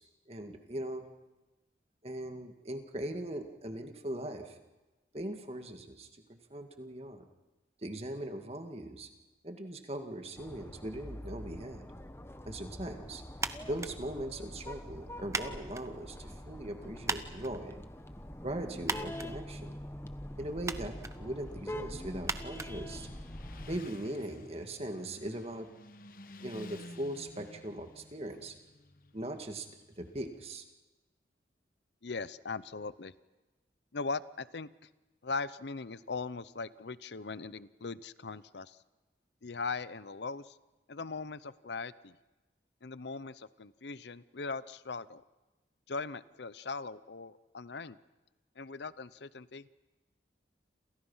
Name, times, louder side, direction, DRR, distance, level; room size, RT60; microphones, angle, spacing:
voice 1, 0.3-1.1 2.0-4.6 5.1-7.3 7.8-9.1 9.4-11.9 12.4-13.2 13.6-17.8 18.4-19.7 20.4-23.1 23.7-25.7 26.4-28.5 29.1-29.7 30.0-30.7, right 1 dB, 35° right, 5 dB, 2.1 m, -40 dB
sound 1, 10.4-23.8, left 1 dB, 15° left, 1.0 m, -44 dB
sound 2, 13.3-23.6, right 4 dB, 15° right, 0.9 m, -42 dB
Motorcycle, 20.8-30.5, left 2 dB, 50° left, 1.1 m, -53 dB
voice 2, 32.0-33.1 33.9-34.7 35.2-38.8 39.4-40.6 40.9-42.2 42.8-45.2 45.9-48.0 48.6-49.7, left 4 dB, 75° left, 16 dB, 0.7 m, -39 dB
29.0 x 27.5 x 5.7 m, 1.1 s
head